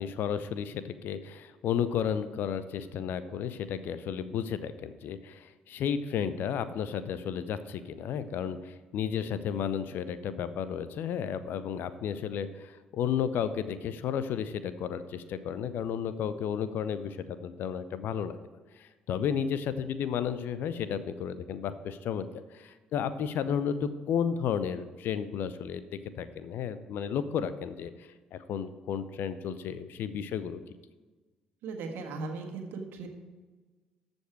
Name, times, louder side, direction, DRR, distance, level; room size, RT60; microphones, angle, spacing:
voice 1, 0.0-18.4 18.8-30.6, left 8 dB, 55° left, 13 dB, 0.6 m, -33 dB
voice 2, 31.6-33.1, right 3 dB, 60° right, 4 dB, 1.6 m, -37 dB
14.0 x 5.4 x 4.7 m, 1.3 s
figure-of-eight pair, 50°, 4 cm